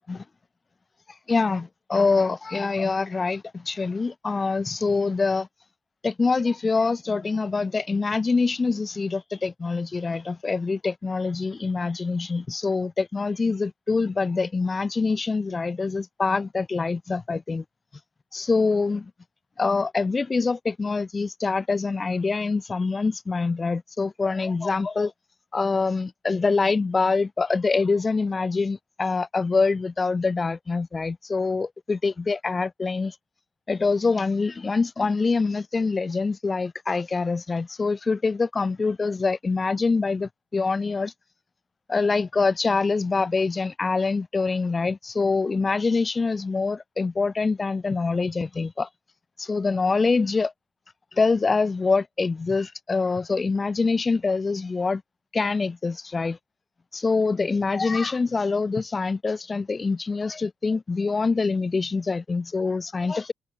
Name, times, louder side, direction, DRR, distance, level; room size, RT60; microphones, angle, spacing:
voice 1, 1.3-5.5 6.0-17.6 18.3-19.1 19.6-25.1 25.5-33.1 33.7-41.1 41.9-48.9 49.4-50.5 51.2-55.0 55.3-56.4 56.9-63.3, left 4 dB, 30° left, 1.4 m, -25 dB
cardioid pair, 90°, 0 cm